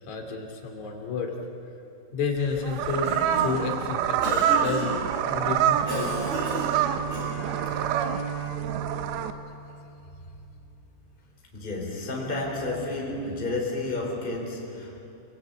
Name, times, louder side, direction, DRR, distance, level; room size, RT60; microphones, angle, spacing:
voice 1, 0.1-1.3 2.1-5.0 5.3-6.2, left 4 dB, 45° left, 2 dB, 3.6 m, -31 dB
sound 1, 2.4-9.3, right 10 dB, 75° right, 3.1 m, -27 dB
Cough, 2.7-3.7 4.2-5.0 5.9-7.5, right 1 dB, 35° right, 6.3 m, -33 dB
Bowed string instrument, 5.0-10.4, right 7 dB, 65° left, 4.9 m, -36 dB
voice 2, 11.5-15.0, left 2 dB, 10° left, -1 dB, 3.8 m, -31 dB
29.0 x 19.5 x 8.9 m, 2.7 s
omnidirectional pair, 5.3 m